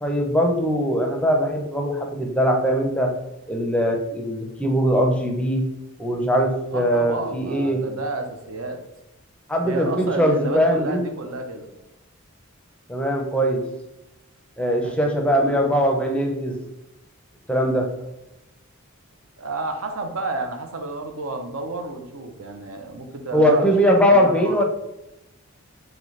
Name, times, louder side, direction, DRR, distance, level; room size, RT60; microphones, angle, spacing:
voice 1, 0.0-3.1 3.5-5.7 6.0-7.8 9.5-11.0 12.9-13.6 14.6-16.6 17.5-17.9 23.3-24.6, equal, 5° left, 2 dB, 0.5 m, -21 dB
voice 2, 6.7-8.8 9.6-11.7 14.8-15.7 19.4-24.6, right 2 dB, 75° right, 5 dB, 0.6 m, -31 dB
4.0 x 3.2 x 3.1 m, 0.93 s
head